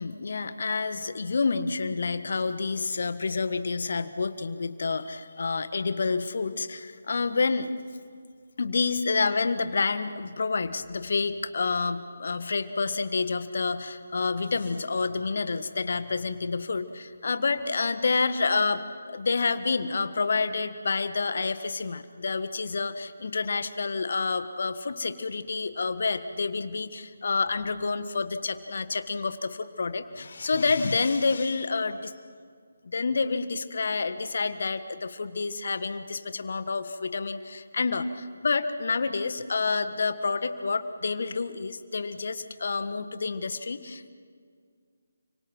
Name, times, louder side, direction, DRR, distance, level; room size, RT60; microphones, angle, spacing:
voice 1, 0.0-7.7 8.6-32.1 32.8-44.1, left 4 dB, 55° left, 11 dB, 1.6 m, -28 dB
30.0 x 25.5 x 6.0 m, 2.1 s
figure-of-eight pair, 150°, 0 cm